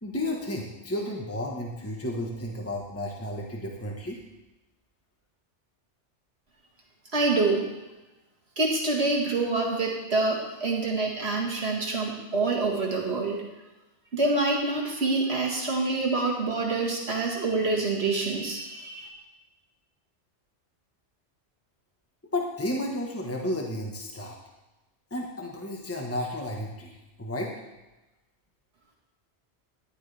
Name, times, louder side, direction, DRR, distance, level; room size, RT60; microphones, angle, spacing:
voice 1, 0.0-4.2 22.3-24.3 25.1-26.9 27.2-27.5, left 1 dB, 10° left, -1 dB, 1.4 m, -32 dB
voice 2, 7.1-7.7 8.6-13.4 14.1-19.1, right 3 dB, 60° right, -2 dB, 2.1 m, -26 dB
14.0 x 11.0 x 3.5 m, 1.0 s
omnidirectional pair, 1.2 m